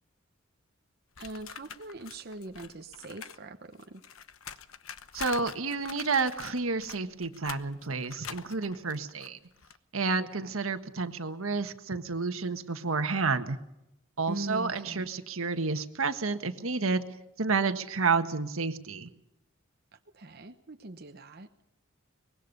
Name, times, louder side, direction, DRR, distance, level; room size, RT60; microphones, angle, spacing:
sound 1, 1.1-3.4 3.6-9.8, left 8 dB, 85° left, 1.0 m, -45 dB
voice 1, 1.2-4.0 10.1-10.5 14.3-15.1 19.9-21.5, right 2 dB, 50° right, 6 dB, 1.0 m, -42 dB
voice 2, 5.1-9.4 9.9-13.6 14.2-17.0 17.4-19.1, right 4 dB, 80° right, 8 dB, 1.5 m, -30 dB
23.5 x 21.0 x 5.4 m, 0.87 s
head